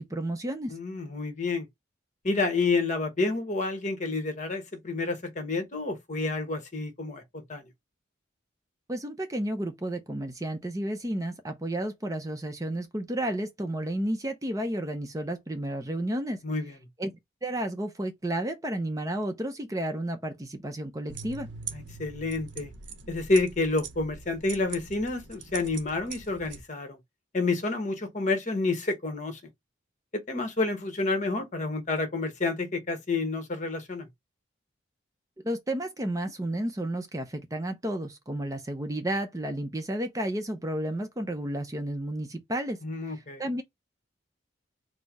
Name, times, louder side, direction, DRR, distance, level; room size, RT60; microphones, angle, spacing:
voice 1, 0.0-0.8 8.9-16.4 17.0-21.5 35.4-43.6, right 1 dB, 20° right, 0.5 m, -32 dB
voice 2, 0.7-1.7 2.2-7.7 16.4-16.8 21.7-22.7 23.1-27.0 27.3-29.4 30.3-34.1 42.8-43.4, left 3 dB, 40° left, 1.1 m, -29 dB
sound 1, 21.1-26.6, right 5 dB, 80° right, 0.8 m, -42 dB
4.4 x 2.0 x 4.6 m
head